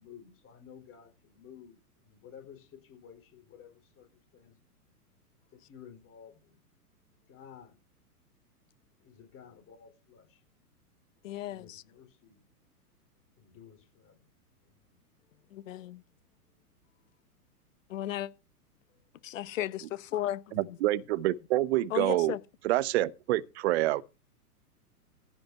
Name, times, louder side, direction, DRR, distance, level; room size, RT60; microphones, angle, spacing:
voice 1, 0.0-4.6 5.5-6.6 7.3-7.8 9.0-10.4 11.5-12.4 13.3-14.2 14.9-15.0, left 8 dB, 30° left, 4.8 m, -53 dB
voice 2, 11.2-11.8 15.5-16.0 17.9-18.3 19.2-20.8 21.9-22.4, left 13 dB, 55° left, 1.2 m, -35 dB
voice 3, 20.5-22.3 22.6-24.0, right 16 dB, 45° right, 0.9 m, -27 dB
15.5 x 6.3 x 5.6 m
figure-of-eight pair, 110°, 47 cm